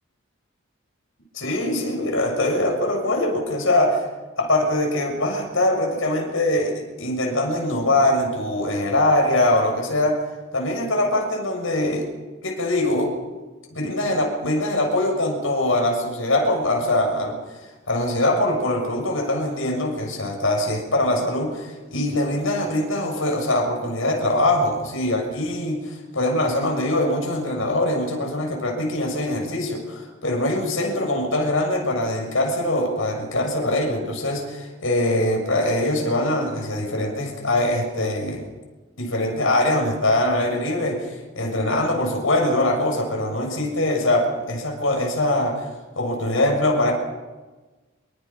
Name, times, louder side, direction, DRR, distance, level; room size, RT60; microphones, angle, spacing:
voice 1, 1.3-4.0 4.4-10.2 10.5-12.1 12.4-13.1 13.7-17.4 17.9-38.5 39.0-45.6 46.0-46.9, left 1 dB, 75° left, 2 dB, 7.0 m, -22 dB
27.0 x 23.5 x 5.9 m, 1.2 s
head